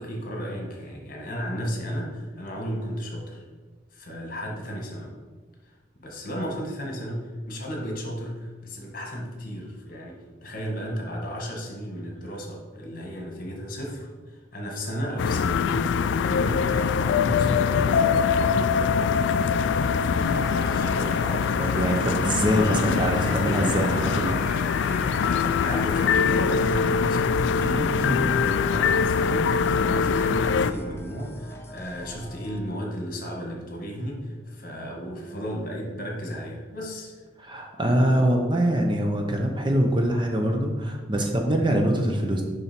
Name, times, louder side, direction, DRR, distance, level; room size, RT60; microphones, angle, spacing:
voice 1, 0.0-3.4 3.9-5.1 6.0-19.0 19.6-21.4 22.5-22.9 25.6-37.2, equal, 45° left, 0 dB, 1.6 m, -34 dB
sound 1, 15.2-30.7, left 6 dB, 70° left, 0.3 m, -23 dB
Cheering / Applause / Crowd, 20.0-26.8, right 2 dB, 50° right, 1.2 m, -39 dB
voice 2, 21.6-24.3 27.6-28.2 37.4-42.4, right 1 dB, 25° right, 3 dB, 0.7 m, -24 dB
sound 2, 24.7-32.6, equal, 15° left, 0.5 m, -43 dB
6.9 x 5.6 x 4.4 m, 1.4 s
head